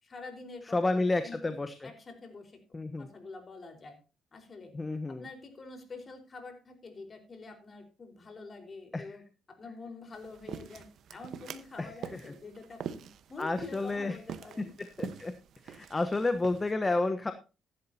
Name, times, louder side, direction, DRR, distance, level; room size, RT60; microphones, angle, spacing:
voice 1, 0.0-1.5 1.8-2.6 3.0-4.0 4.3-4.7 5.1-10.8 11.1-14.7, left 3 dB, 40° left, 5 dB, 4.4 m, -46 dB
voice 2, 0.7-1.9 2.7-3.1 4.7-5.3 8.9-9.1 11.8-12.2 13.4-14.2 14.6-14.7 15.0-15.3 15.6-17.3, left 2 dB, 20° left, 10 dB, 1.1 m, -30 dB
sound 1, 10.1-16.7, right 8 dB, 70° right, 1.1 m, -45 dB
14.5 x 11.5 x 2.8 m, 0.31 s
cardioid pair, 90°, 0 cm